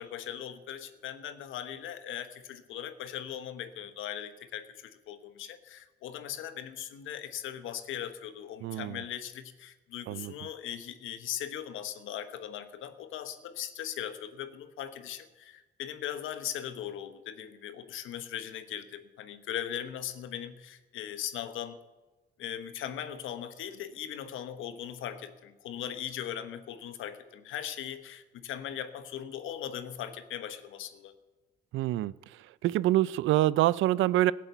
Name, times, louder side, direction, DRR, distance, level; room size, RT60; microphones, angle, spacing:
voice 1, 0.0-21.8 22.4-31.1, left 10 dB, 85° left, 11 dB, 1.1 m, -39 dB
voice 2, 8.6-9.0 10.1-10.3 31.7-32.1 32.6-34.3, right 15 dB, 80° right, 20 dB, 0.4 m, -26 dB
16.0 x 7.6 x 8.2 m, 1.2 s
cardioid pair, 90°, 20 cm